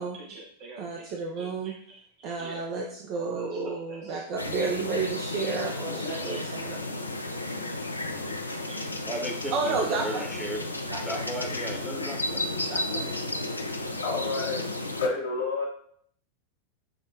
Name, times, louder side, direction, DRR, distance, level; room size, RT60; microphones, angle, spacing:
voice 1, 0.0-6.8 7.6-8.1 8.7-8.8 9.5-10.2 10.9-11.2 12.6-13.1, right 4 dB, 40° right, 2 dB, 0.4 m, -32 dB
sound 1, 4.4-15.1, left 2 dB, 85° left, 0.3 m, -33 dB
voice 2, 5.8-6.4 12.0-12.4 12.9-13.0 14.0-14.6 15.0-15.7, left 3 dB, 65° left, -2 dB, 0.9 m, -31 dB
voice 3, 9.0-10.7 11.0-12.5, equal, ahead, -1 dB, 0.7 m, -35 dB
6.0 x 2.1 x 2.6 m, 0.65 s
figure-of-eight pair, 90°, 0 cm